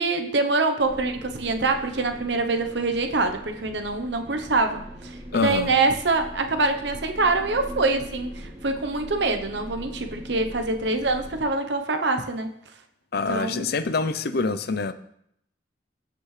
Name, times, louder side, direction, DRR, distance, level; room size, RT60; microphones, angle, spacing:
voice 1, 0.0-12.5 13.3-13.7, right 3 dB, 65° right, 0.9 m, -25 dB
sound 1, 0.8-11.5, equal, 30° right, 3.5 m, -41 dB
voice 2, 5.3-5.7 13.1-14.9, left 4 dB, 55° left, 0.6 m, -25 dB
16.0 x 6.1 x 3.3 m
head